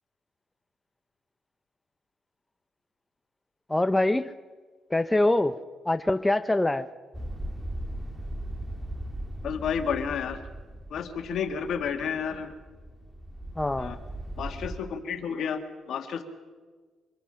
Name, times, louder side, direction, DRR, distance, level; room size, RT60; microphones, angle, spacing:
voice 1, 3.7-4.3 4.9-5.6 5.9-6.9 13.6-13.9, left 2 dB, 10° left, 10 dB, 0.7 m, -24 dB
sound 1, 7.1-14.8, right 1 dB, 10° right, 1.9 m, -38 dB
voice 2, 9.4-10.4 10.9-12.5 13.8-14.0 14.4-15.6 15.9-16.2, left 7 dB, 70° left, 6 dB, 2.1 m, -31 dB
25.5 x 21.5 x 5.8 m, 1.4 s
cardioid pair, 90°, 0 cm